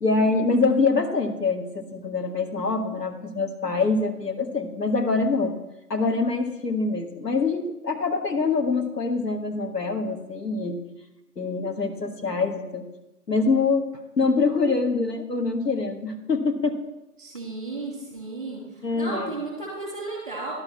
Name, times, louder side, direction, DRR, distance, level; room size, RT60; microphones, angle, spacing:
voice 1, 0.0-5.5 5.9-10.8 11.4-12.9 13.3-13.9 14.2-16.8 18.8-19.3, left 3 dB, 90° left, 4 dB, 1.7 m, -24 dB
voice 2, 17.2-18.6 18.9-20.6, right 2 dB, 20° right, -2 dB, 3.0 m, -33 dB
11.0 x 6.4 x 5.7 m, 0.94 s
figure-of-eight pair, 175°, 47 cm